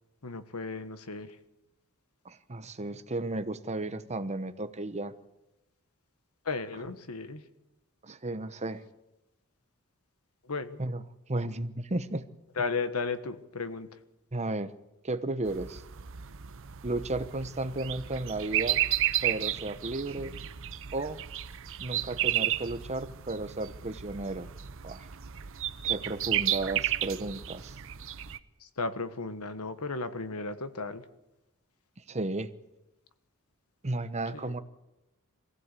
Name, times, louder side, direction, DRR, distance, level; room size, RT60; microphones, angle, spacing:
voice 1, 0.2-1.4 6.4-7.4 10.4-10.8 12.6-13.9 28.6-31.0 34.3-34.5, left 4 dB, 90° left, 10 dB, 1.4 m, -34 dB
voice 2, 2.2-5.1 8.0-8.8 10.8-11.0 11.3-12.2 14.3-14.7 15.0-15.8 16.8-18.8 19.2-20.3 20.9-21.2 21.8-24.5 24.8-25.1 25.8-27.8 32.1-32.5 33.8-34.6, right 2 dB, 30° right, 11 dB, 1.0 m, -34 dB
sound 1, 15.5-28.4, right 12 dB, 65° right, 0.8 m, -33 dB
22.0 x 15.5 x 8.4 m, 0.94 s
head